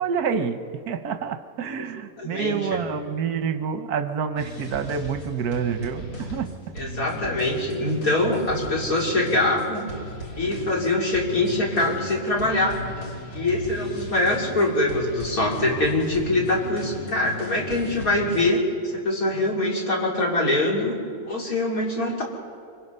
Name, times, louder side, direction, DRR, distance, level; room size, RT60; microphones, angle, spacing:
voice 1, 0.0-6.5, right 6 dB, 85° right, 9 dB, 1.4 m, -28 dB
voice 2, 2.2-2.6 6.8-9.9 10.4-12.8 13.3-18.6 18.9-20.9 21.2-22.2, left 2 dB, 70° left, -2 dB, 3.9 m, -23 dB
sound 1, 4.4-18.5, left 1 dB, 85° left, 2.9 m, -36 dB
25.5 x 24.5 x 5.5 m, 2.3 s
omnidirectional pair, 1.6 m